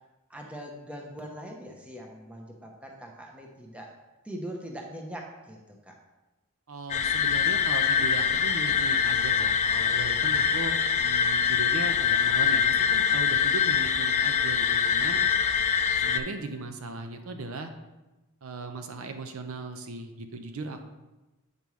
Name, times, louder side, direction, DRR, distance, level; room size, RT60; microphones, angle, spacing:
voice 1, 0.3-3.9 4.2-6.0, equal, 5° right, 0 dB, 0.8 m, -41 dB
voice 2, 6.7-15.2 16.0-17.7 18.4-20.8, right 3 dB, 70° right, 6 dB, 0.6 m, -38 dB
sound 1, 6.9-16.2, left 7 dB, 35° left, 0.3 m, -24 dB
8.3 x 5.3 x 3.1 m, 1.1 s
head